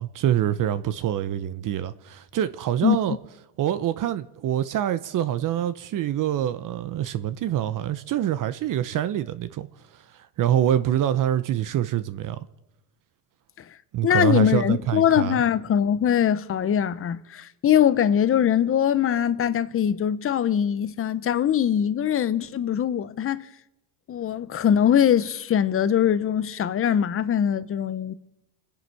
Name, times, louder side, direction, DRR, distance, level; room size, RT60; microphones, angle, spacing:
voice 1, 0.0-3.2 3.6-9.7 9.9-12.4 13.9-15.4, right 11 dB, 40° right, 0.8 m, -25 dB
voice 2, 14.0-23.5 24.1-28.1, left 9 dB, 25° left, 0.8 m, -22 dB
29.0 x 10.5 x 4.8 m
supercardioid pair, 115°, 49 cm